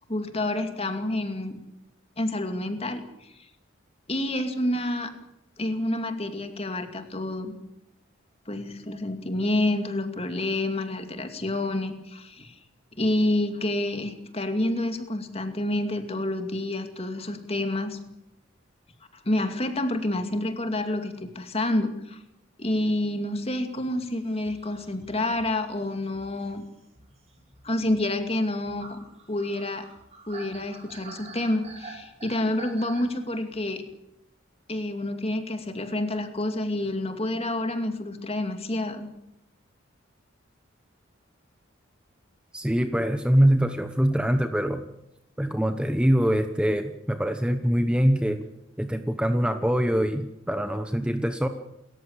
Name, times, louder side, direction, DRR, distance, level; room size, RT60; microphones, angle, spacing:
voice 1, 0.1-1.6 2.2-3.5 4.1-5.1 5.6-7.5 8.5-12.6 13.0-18.0 19.1-22.2 22.6-26.6 27.6-29.0 29.3-29.9 30.3-33.8 34.7-39.1, left 1 dB, 30° left, 7 dB, 2.4 m, -28 dB
sound 1, 23.8-33.8, right 3 dB, 35° right, 5.8 m, -48 dB
voice 2, 42.5-44.9 45.4-48.4 48.8-51.5, equal, 5° right, 8 dB, 1.0 m, -24 dB
28.5 x 14.5 x 7.4 m, 0.86 s
head